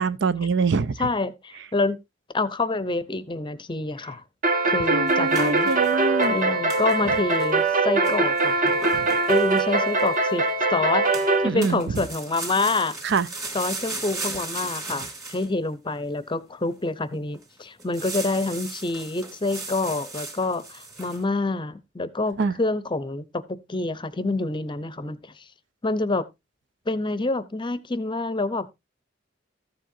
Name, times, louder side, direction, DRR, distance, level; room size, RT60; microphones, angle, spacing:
voice 1, 0.0-1.1 4.9-6.4 8.9-9.1 11.4-11.8 13.0-13.3 22.4-22.5, right 4 dB, 65° right, 0.5 m, -24 dB
voice 2, 1.0-2.0 2.3-4.2 4.6-5.7 6.3-8.8 9.3-13.0 13.5-25.4 25.8-26.3 26.9-28.7, left 3 dB, 25° left, 0.7 m, -27 dB
sound 1, 4.4-11.5, right 3 dB, 45° right, 1.5 m, -22 dB
sound 2, 5.1-6.4 6.7-7.0 7.3-7.7 8.0-10.2 11.1-11.4 11.6-15.5 16.0-16.1 16.7-16.8 17.1-17.4 17.8-21.2, right 3 dB, 15° right, 2.3 m, -36 dB
14.5 x 7.5 x 2.6 m
head